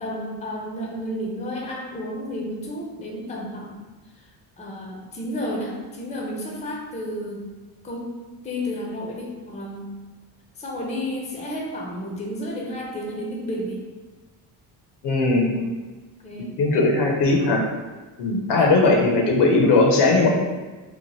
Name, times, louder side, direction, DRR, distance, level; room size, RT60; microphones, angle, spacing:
voice 1, 0.0-3.9 4.2-4.3 4.6-7.4 7.8-8.1 8.4-9.9 10.6-13.8 15.4-15.7 16.2-16.6 18.6-19.0, equal, 15° left, -1 dB, 0.6 m, -32 dB
voice 2, 15.0-15.5 16.6-17.6 18.2-20.3, left 3 dB, 55° left, 0 dB, 0.7 m, -18 dB
3.0 x 2.1 x 3.0 m, 1.2 s
supercardioid pair, 60°, 47 cm